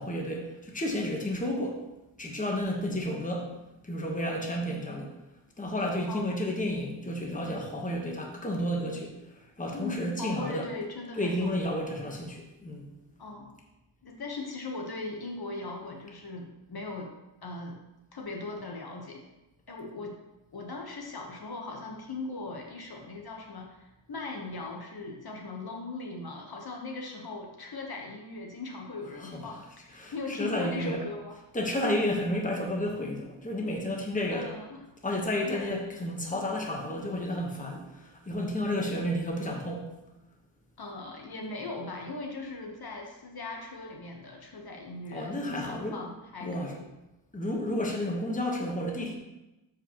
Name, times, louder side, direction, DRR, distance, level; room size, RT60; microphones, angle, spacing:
voice 1, 0.0-1.8 2.2-3.5 3.8-5.1 5.6-10.7 11.2-12.9 29.3-29.4 29.9-31.0 31.5-34.5 35.0-39.8 45.1-46.0 46.4-46.7 47.3-49.2, left 1 dB, 15° left, 0 dB, 1.2 m, -31 dB
voice 2, 6.1-6.4 9.7-11.7 13.2-13.6 14.0-17.1 17.4-17.8 18.1-19.2 19.7-20.2 20.5-31.3 34.3-34.8 35.4-35.7 40.8-46.9, left 3 dB, 50° left, 1 dB, 1.1 m, -39 dB
12.5 x 5.1 x 3.0 m, 0.98 s
wide cardioid pair, 155°, 47 cm